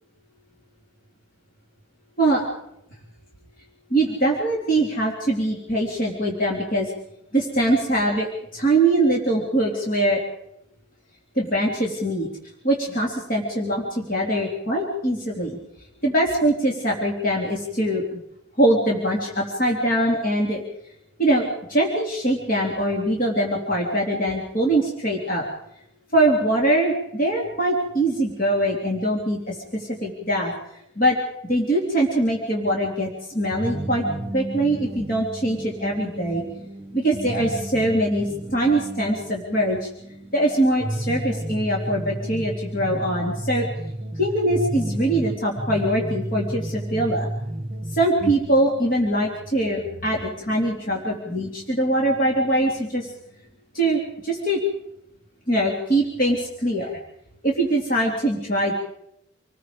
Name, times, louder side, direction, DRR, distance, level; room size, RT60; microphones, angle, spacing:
voice 1, 3.9-6.9 7.3-8.3 8.5-10.2 11.4-12.3 12.6-15.6 16.0-18.2 18.6-20.6 21.2-25.4 26.1-30.5 31.0-31.2 31.5-34.0 34.3-36.4 36.9-39.9 40.3-43.7 44.2-47.3 47.9-53.1 53.7-54.6 55.5-57.0 57.4-58.7, right 1 dB, 45° left, -2 dB, 3.5 m, -22 dB
sound 1, 33.5-48.3, right 1 dB, 30° right, 1.7 m, -32 dB
28.0 x 20.0 x 5.2 m, 0.80 s
head